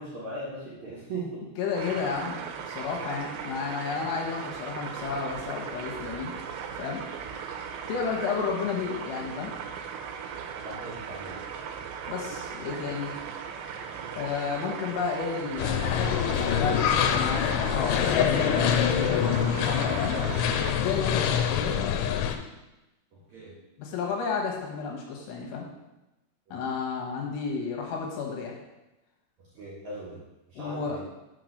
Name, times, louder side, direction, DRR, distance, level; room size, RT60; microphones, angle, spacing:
voice 1, 0.0-1.5 10.6-11.4 23.1-23.6 26.5-26.7 29.5-30.2 30.5-31.0, right 2 dB, 55° right, -8 dB, 2.2 m, -39 dB
voice 2, 1.6-6.3 6.8-7.0 7.9-9.5 12.1-13.2 14.1-20.2 20.8-21.8 23.8-25.7 26.5-28.5 30.6-31.0, left 5 dB, 70° left, -1 dB, 3.2 m, -32 dB
sound 1, 1.8-20.7, right 7 dB, 80° right, 2.9 m, -38 dB
sound 2, 15.6-22.4, left 8 dB, 90° left, 2.9 m, -25 dB
6.5 x 5.9 x 6.4 m, 0.99 s
omnidirectional pair, 5.3 m